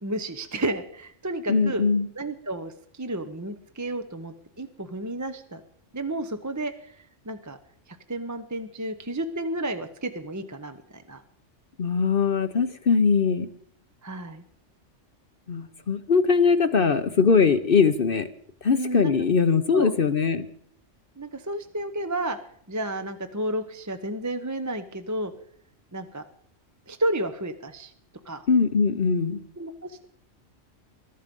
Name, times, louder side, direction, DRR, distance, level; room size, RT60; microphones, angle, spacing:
voice 1, 0.0-1.9 2.2-5.6 5.9-6.9 7.3-7.6 8.1-11.2 14.0-14.4 18.8-19.1 19.7-19.9 21.2-22.4 22.7-25.3 25.9-26.2 26.9-27.9 28.3-28.5 29.6-30.0, right 1 dB, 15° right, 8 dB, 0.8 m, -31 dB
voice 2, 1.5-2.1 11.8-13.5 15.5-18.3 18.6-20.4 28.5-29.4, left 5 dB, 50° left, 9 dB, 1.0 m, -21 dB
21.5 x 12.5 x 5.3 m, 0.65 s
omnidirectional pair, 1.3 m